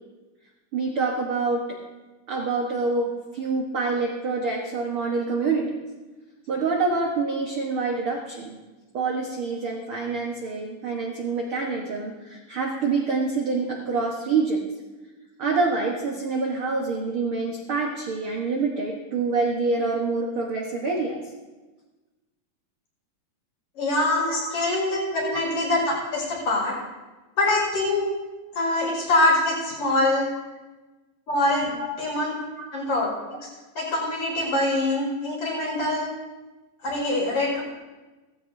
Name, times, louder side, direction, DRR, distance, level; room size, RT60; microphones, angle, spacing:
voice 1, 0.7-1.6 2.3-5.7 6.5-8.6 8.9-14.6 15.4-21.2 24.2-24.5 25.2-25.4 31.8-31.9 32.6-32.7, right 4 dB, 60° right, -1 dB, 1.5 m, -26 dB
voice 2, 23.7-26.7 27.4-28.1 28.5-30.3 31.3-32.3 32.7-33.1 33.4-33.5 33.7-36.1 36.8-37.6, left 2 dB, 50° left, -5 dB, 6.6 m, -24 dB
17.0 x 15.0 x 2.7 m, 1.2 s
omnidirectional pair, 4.1 m